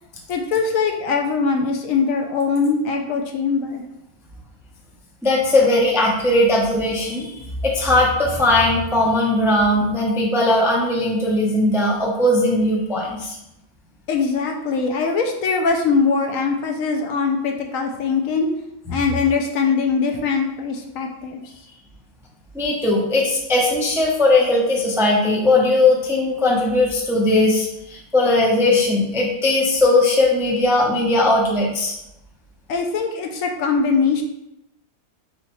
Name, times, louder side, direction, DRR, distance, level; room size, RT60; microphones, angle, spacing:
voice 1, 0.3-3.8 14.1-18.5 18.9-21.4 32.7-34.2, left 5 dB, 70° left, 3 dB, 0.9 m, -21 dB
voice 2, 5.2-7.3 7.6-13.4 22.5-31.9, left 2 dB, 5° right, -3 dB, 0.3 m, -18 dB
4.2 x 3.7 x 3.0 m, 0.85 s
omnidirectional pair, 1.6 m